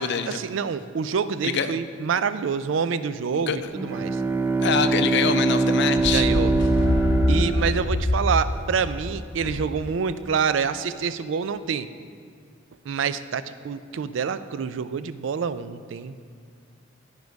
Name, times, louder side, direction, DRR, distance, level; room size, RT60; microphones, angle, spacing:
voice 1, 0.3-4.2 6.1-6.5 7.3-11.9 12.9-16.1, right 6 dB, 75° right, 13 dB, 0.4 m, -27 dB
voice 2, 3.3-3.7 4.6-6.3, left 7 dB, 65° left, 10 dB, 0.5 m, -25 dB
Bowed string instrument, 3.7-8.3, right 3 dB, 10° right, 0.4 m, -23 dB
sound 1, 6.0-9.8, left 1 dB, 90° left, 1.0 m, -25 dB
11.5 x 4.7 x 5.2 m, 2.2 s
head